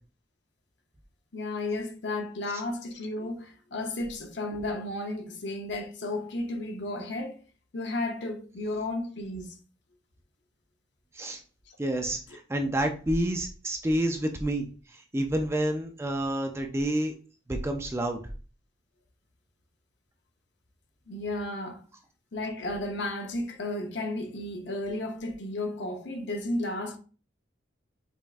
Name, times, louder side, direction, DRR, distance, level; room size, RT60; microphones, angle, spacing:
voice 1, 1.3-7.4 7.7-9.6 21.1-21.8 22.3-27.0, left 2 dB, 65° left, 0.7 m, -33 dB
voice 2, 11.8-14.7 15.1-17.2 17.5-18.2, right 1 dB, 15° right, 0.3 m, -28 dB
5.3 x 2.4 x 2.3 m
head